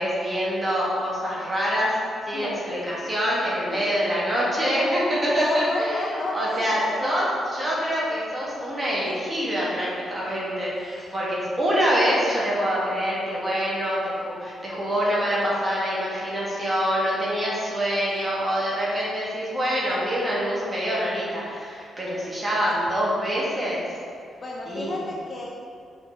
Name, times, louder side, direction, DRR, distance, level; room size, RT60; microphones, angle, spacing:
voice 1, 0.0-1.9 2.3-23.8 24.7-25.0, equal, 20° right, -7 dB, 1.8 m, -25 dB
voice 2, 5.3-7.3 10.9-11.1 24.4-25.5, left 2 dB, 30° left, -2 dB, 0.7 m, -31 dB
6.5 x 5.6 x 4.6 m, 2.3 s
wide cardioid pair, 175°, 0 cm